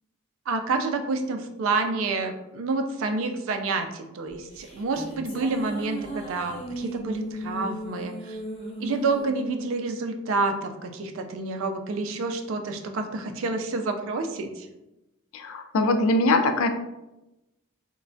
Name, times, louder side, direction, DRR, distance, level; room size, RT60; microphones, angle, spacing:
voice 1, 0.5-8.4 8.8-14.7, right 3 dB, 70° right, 6 dB, 0.4 m, -28 dB
sound 1, 4.3-10.8, right 1 dB, 25° left, 0.6 m, -37 dB
voice 2, 15.3-16.7, left 2 dB, 75° left, 7 dB, 0.3 m, -22 dB
3.1 x 2.2 x 2.5 m, 0.94 s
head